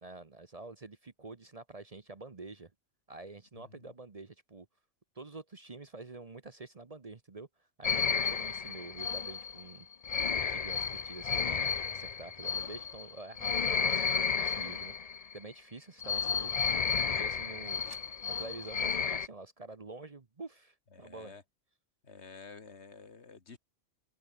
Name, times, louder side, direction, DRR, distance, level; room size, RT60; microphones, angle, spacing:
voice 1, 0.0-2.7 3.1-4.7 5.1-9.9 10.2-14.9 15.3-16.6 17.1-17.8 18.3-21.3, right 3 dB, 35° right, 1.0 m, -48 dB
voice 2, 3.5-3.9 20.9-21.4 22.0-23.6, left 4 dB, 70° left, 2.2 m, -51 dB
sound 1, 7.8-15.4 16.0-19.3, left 6 dB, 40° left, 0.7 m, -32 dB
sound 2, 13.1-18.3, right 3 dB, 85° right, 4.1 m, -65 dB
omnidirectional pair, 1.2 m